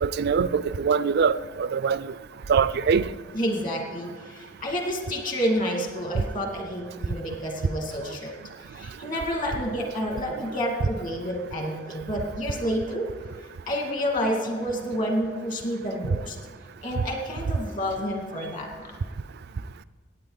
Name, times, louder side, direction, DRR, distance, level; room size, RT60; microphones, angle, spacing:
voice 1, 0.0-2.1 2.5-3.1, right 6 dB, 55° right, 0.4 m, -23 dB
voice 2, 3.3-8.3 8.7-13.1 13.4-16.4 16.8-19.0, equal, 45° left, 2.1 m, -29 dB
17.5 x 8.9 x 3.9 m
head